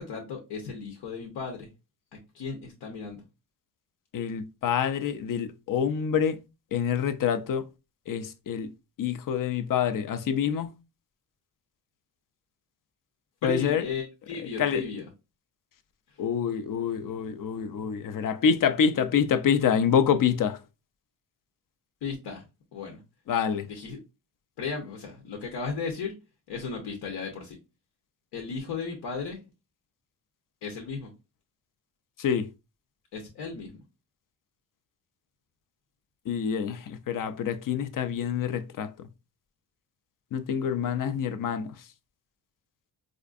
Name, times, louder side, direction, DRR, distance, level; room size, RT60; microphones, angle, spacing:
voice 1, 0.0-1.7 2.1-3.2 13.4-15.1 22.0-22.4 22.7-23.0 23.7-24.0 24.6-26.2 26.5-27.6 28.3-29.4 30.6-31.1 33.1-33.8, left 5 dB, 90° left, 0.9 m, -35 dB
voice 2, 4.1-6.4 6.7-7.6 8.1-8.7 9.0-10.7 13.4-13.8 14.6-14.8 16.2-20.6 23.3-23.6 32.2-32.5 36.3-38.9 40.3-41.7, left 7 dB, 55° left, 0.5 m, -26 dB
4.2 x 2.5 x 2.4 m
cardioid pair, 110°, 41 cm